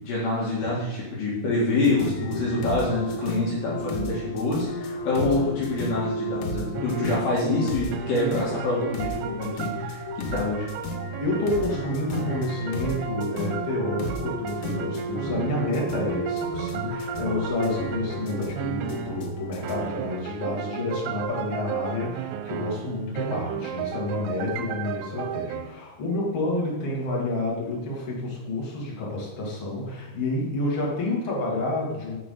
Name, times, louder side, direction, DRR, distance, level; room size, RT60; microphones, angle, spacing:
voice 1, 0.0-10.7, left 2 dB, 65° left, -6 dB, 3.8 m, -26 dB
sound 1, 1.8-19.8, equal, 80° left, 3.8 m, -33 dB
sound 2, 6.7-7.4 7.9-19.4 19.6-25.7, right 10 dB, 85° right, 2.9 m, -35 dB
voice 2, 11.2-32.2, left 2 dB, 30° left, -4 dB, 2.6 m, -29 dB
16.5 x 5.8 x 4.0 m, 1.1 s
omnidirectional pair, 5.8 m